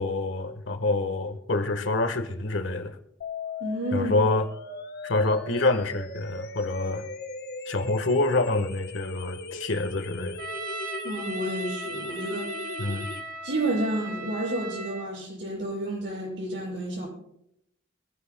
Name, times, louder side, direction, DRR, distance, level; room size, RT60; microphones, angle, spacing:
voice 1, 0.0-3.0 3.9-4.5 5.0-7.1 7.7-10.4 12.8-13.1, left 2 dB, 80° left, 8 dB, 1.4 m, -26 dB
sound 1, 3.2-13.2, left 3 dB, 55° left, 1.2 m, -38 dB
voice 2, 3.6-4.1 11.0-12.5 13.4-17.1, right 1 dB, 70° right, -2 dB, 6.8 m, -30 dB
Trumpet, 10.4-15.1, right 2 dB, 45° right, 1.4 m, -37 dB
24.0 x 15.5 x 2.2 m, 0.76 s
head